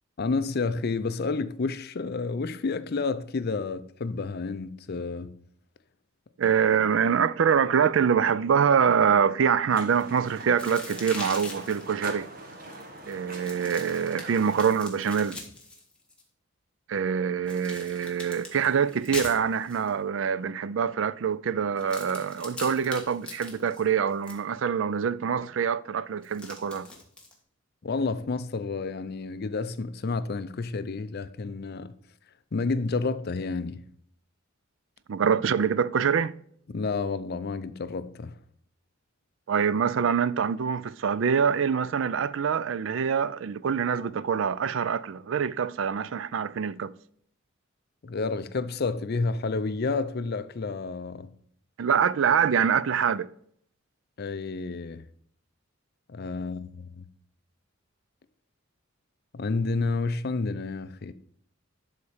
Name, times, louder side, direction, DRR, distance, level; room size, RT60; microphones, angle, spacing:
voice 1, 0.2-5.4 27.8-31.9 32.5-33.8 36.7-38.3 48.0-51.3 54.2-55.1 56.1-57.1 59.3-61.1, left 4 dB, 50° left, 0.5 m, -30 dB
voice 2, 6.4-12.3 13.1-15.4 16.9-26.9 35.1-36.3 39.5-46.9 51.8-53.3, right 7 dB, 65° right, 0.4 m, -25 dB
sound 1, 9.7-14.7, right 1 dB, 45° right, 1.5 m, -42 dB
sound 2, 10.6-11.9 13.3-16.2 17.5-19.9 21.8-24.4 26.2-27.3, left 2 dB, 5° left, 1.6 m, -41 dB
11.5 x 4.2 x 4.9 m
head